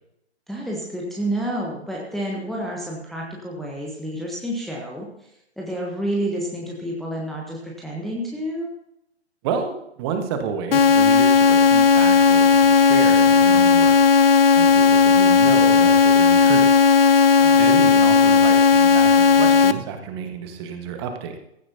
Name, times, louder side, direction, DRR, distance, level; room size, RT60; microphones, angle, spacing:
voice 1, 0.5-5.3 5.6-8.7 17.4-17.8, right 1 dB, ahead, -3 dB, 1.1 m, -29 dB
voice 2, 9.4-14.3 14.6-16.7 17.6-21.4, right 6 dB, 25° right, 5 dB, 1.5 m, -30 dB
sound 1, 10.7-19.7, left 5 dB, 55° left, 0.8 m, -15 dB
15.5 x 15.0 x 2.8 m, 0.80 s
figure-of-eight pair, 130°, 33 cm